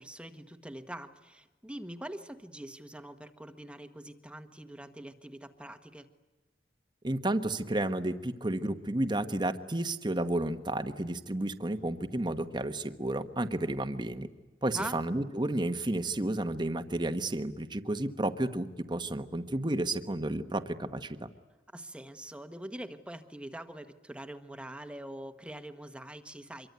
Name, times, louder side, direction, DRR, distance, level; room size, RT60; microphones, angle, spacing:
voice 1, 0.0-6.1 14.7-15.0 21.7-26.7, right 1 dB, 5° right, 8 dB, 1.3 m, -43 dB
voice 2, 7.0-14.3 14.6-21.3, right 1 dB, 25° right, 8 dB, 1.2 m, -32 dB
25.5 x 23.5 x 9.5 m, 1.1 s
head